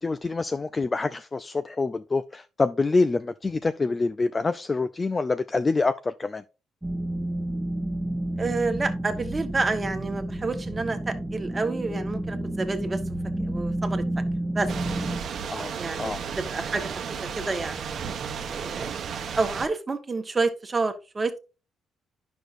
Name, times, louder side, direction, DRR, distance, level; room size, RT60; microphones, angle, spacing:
voice 1, 0.0-6.4 15.5-16.2, left 3 dB, 25° left, 0.4 m, -26 dB
sound 1, 6.8-15.2, right 1 dB, 5° right, 1.2 m, -30 dB
voice 2, 8.4-13.0 13.4-14.0 14.5-14.7 15.8-17.9 18.5-19.1 19.4-21.4, right 3 dB, 25° right, 1.3 m, -29 dB
Thunder / Rain, 14.7-19.7, right 7 dB, 60° right, 0.9 m, -33 dB
10.0 x 6.3 x 2.6 m
cardioid pair, 90°, 0 cm